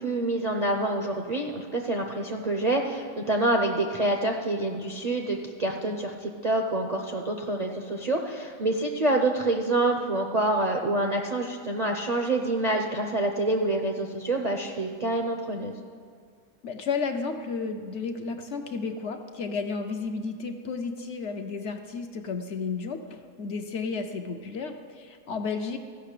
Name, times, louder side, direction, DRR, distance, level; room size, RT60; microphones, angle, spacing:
voice 1, 0.0-15.7, right 2 dB, 45° right, 2 dB, 0.5 m, -27 dB
voice 2, 16.6-25.8, left 4 dB, 60° left, 5 dB, 0.8 m, -32 dB
14.5 x 5.8 x 6.6 m, 2.2 s
omnidirectional pair, 1.5 m